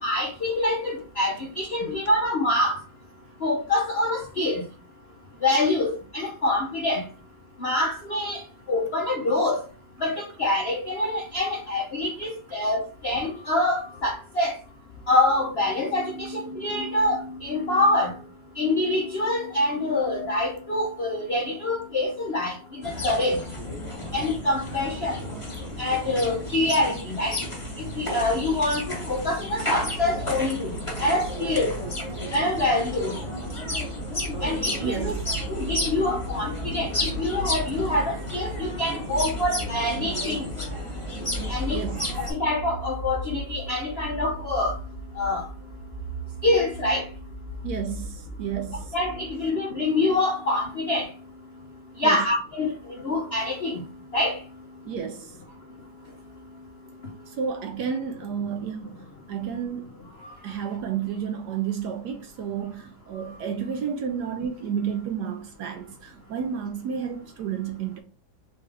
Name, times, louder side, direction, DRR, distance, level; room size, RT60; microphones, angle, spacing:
voice 1, 0.0-2.8 3.4-4.6 5.4-7.0 7.6-8.4 8.7-9.6 10.0-14.5 15.1-18.1 18.6-22.6 22.8-23.4 24.1-25.2 25.8-27.4 27.8-30.7 31.0-31.7 32.3-33.2 34.4-35.1 35.5-40.4 41.5-41.8 42.3-44.8 45.2-45.4 46.4-47.0 48.9-51.1 52.0-52.7 53.0-53.8 54.1-54.4, left 2 dB, 70° left, 0.5 m, -25 dB
sound 1, 22.8-42.3, left 1 dB, 20° left, 1.1 m, -32 dB
sound 2, 33.5-49.5, right 2 dB, 55° right, 1.7 m, -38 dB
voice 2, 34.8-35.3 41.7-42.2 47.6-48.9 52.0-52.3 54.9-55.3 57.3-59.0 59.3-59.9 60.4-68.0, right 7 dB, 75° right, 1.0 m, -31 dB
4.2 x 3.4 x 3.3 m
omnidirectional pair, 2.2 m